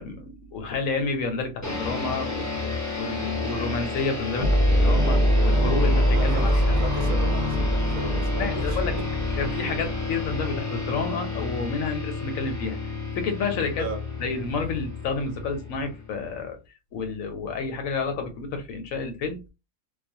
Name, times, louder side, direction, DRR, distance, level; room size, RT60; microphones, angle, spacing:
voice 1, 0.0-6.8 8.4-9.0 9.4-12.8 13.1-13.9 14.2-16.6 16.9-19.4, left 4 dB, 75° left, 1.0 m, -30 dB
sound 1, 1.6-16.4, left 3 dB, 15° left, 0.8 m, -31 dB
sound 2, 4.4-10.9, equal, 35° right, 0.9 m, -23 dB
voice 2, 6.1-9.1 13.8-14.0, right 2 dB, 70° right, 1.0 m, -36 dB
2.4 x 2.3 x 2.6 m
omnidirectional pair, 1.5 m